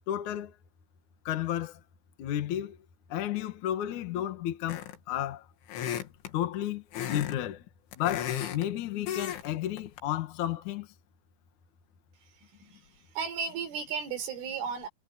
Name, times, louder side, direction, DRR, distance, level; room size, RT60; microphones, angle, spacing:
voice 1, 0.1-0.6 1.3-1.8 2.2-2.8 3.1-5.5 6.3-6.8 7.1-7.6 8.0-10.9, left 12 dB, 60° left, 2.1 m, -32 dB
sound 1, 4.7-5.1 5.7-6.3 6.9-7.4 7.7-8.7 9.1-9.5 9.8-10.0, left 10 dB, 80° left, 4.7 m, -34 dB
voice 2, 12.4-12.8 13.2-14.9, right 6 dB, 85° right, 6.5 m, -34 dB
omnidirectional pair, 5.5 m